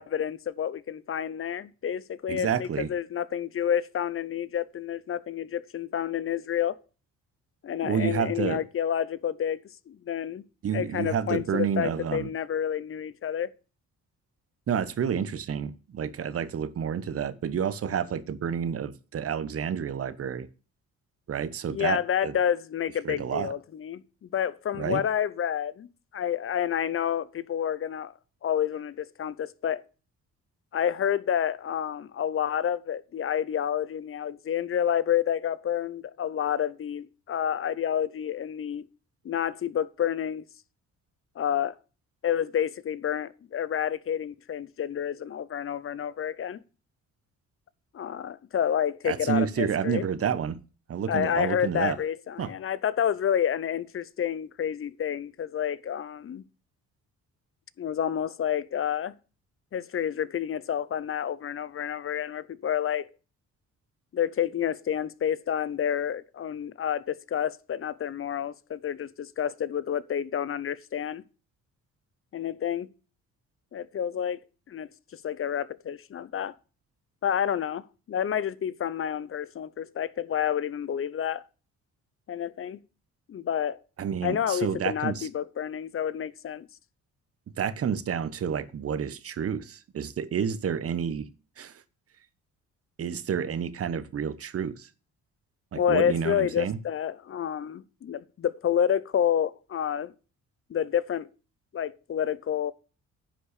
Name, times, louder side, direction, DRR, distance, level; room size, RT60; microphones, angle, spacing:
voice 1, 0.0-6.8 7.6-10.4 10.7-13.5 21.7-25.9 26.1-28.1 28.4-29.8 30.7-38.9 39.2-40.4 41.4-41.7 42.2-46.6 47.9-50.0 51.1-56.4 57.8-59.1 59.7-63.1 64.1-71.2 72.3-72.9 73.7-74.4 74.7-76.5 77.2-81.4 82.3-82.8 83.3-83.8 84.2-86.7 95.7-100.1 100.7-101.3 101.7-102.7, left 9 dB, 45° left, 0.8 m, -29 dB
voice 2, 2.3-2.9 7.8-8.6 10.6-12.3 14.7-20.5 21.3-22.4 23.0-23.5 24.7-25.0 49.0-50.6 50.9-52.0 52.4-52.5 84.0-85.3 87.6-91.3 91.6-91.8 93.0-94.9 95.7-96.8, right 7 dB, 50° right, 1.1 m, -29 dB
10.0 x 5.7 x 6.6 m
cardioid pair, 90°, 30 cm